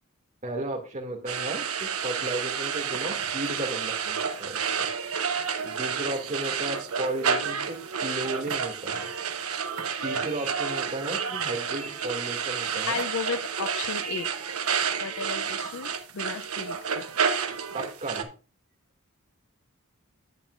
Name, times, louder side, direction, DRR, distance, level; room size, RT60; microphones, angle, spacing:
voice 1, 0.4-4.9 5.6-9.1 10.0-13.0 17.7-18.3, right 1 dB, 35° right, 2.2 m, -34 dB
sound 1, 1.3-18.2, right 6 dB, 90° right, 1.0 m, -30 dB
voice 2, 12.9-14.3 15.0-17.0, left 6 dB, 65° left, 0.5 m, -34 dB
10.5 x 8.7 x 2.5 m
head